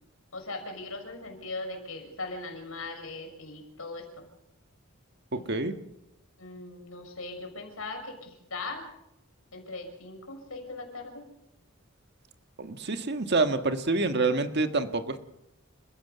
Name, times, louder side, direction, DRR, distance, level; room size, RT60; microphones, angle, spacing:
voice 1, 0.3-4.3 5.3-5.4 6.4-8.8 9.5-11.2, left 3 dB, 85° left, 4 dB, 6.2 m, -39 dB
voice 2, 5.3-5.7 12.6-15.2, right 3 dB, 55° right, 8 dB, 1.6 m, -27 dB
29.5 x 15.5 x 6.9 m, 0.82 s
head